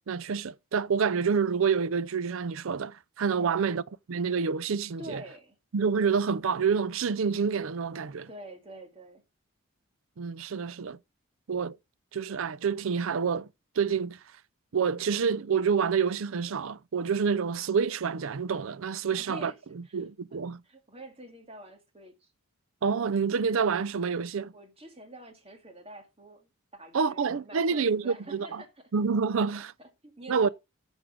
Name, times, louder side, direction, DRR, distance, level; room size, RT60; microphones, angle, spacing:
voice 1, 0.1-5.2 5.7-8.3 10.2-11.0 11.5-11.8 12.1-13.5 13.8-14.2 14.7-20.6 22.8-24.5 26.9-28.6 28.9-29.7 30.3-30.5, right 6 dB, 75° right, 0.5 m, -28 dB
voice 2, 3.4-3.7 5.0-5.6 8.3-9.2 19.1-19.6 19.8-20.0 20.3-20.4 20.6-22.3 24.5-28.9 29.5-30.5, right 1 dB, 30° right, 2.0 m, -47 dB
9.4 x 6.3 x 5.0 m
head